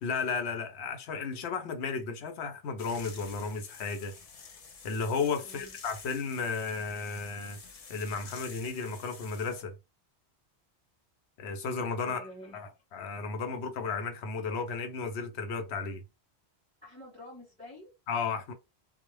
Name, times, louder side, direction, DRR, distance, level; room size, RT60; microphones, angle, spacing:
voice 1, 0.0-4.1 4.8-7.6 7.9-9.8 11.4-12.3 12.5-16.0 18.1-18.5, left 4 dB, 80° left, 0.9 m, -34 dB
sound 1, 2.8-9.6, left 5 dB, 45° left, 0.5 m, -49 dB
voice 2, 5.4-5.8 12.0-12.6 16.8-17.9, left 1 dB, 5° left, 0.9 m, -48 dB
2.4 x 2.0 x 3.0 m
omnidirectional pair, 1.1 m